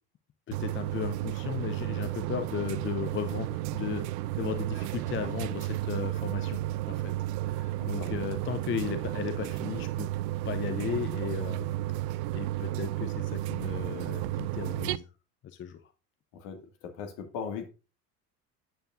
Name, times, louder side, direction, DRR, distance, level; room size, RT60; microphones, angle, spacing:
voice 1, 0.5-4.0 4.4-6.6 6.9-7.1 7.5-10.1 10.4-11.7 12.3-15.0 15.4-15.8, left 10 dB, 25° left, 9 dB, 0.7 m, -35 dB
sound 1, 0.5-15.0, right 15 dB, 45° right, 0.5 m, -33 dB
voice 2, 7.8-8.1 16.3-17.7, left 6 dB, 50° left, 4 dB, 2.2 m, -39 dB
9.0 x 8.8 x 2.6 m, 0.33 s
figure-of-eight pair, 70°, 48 cm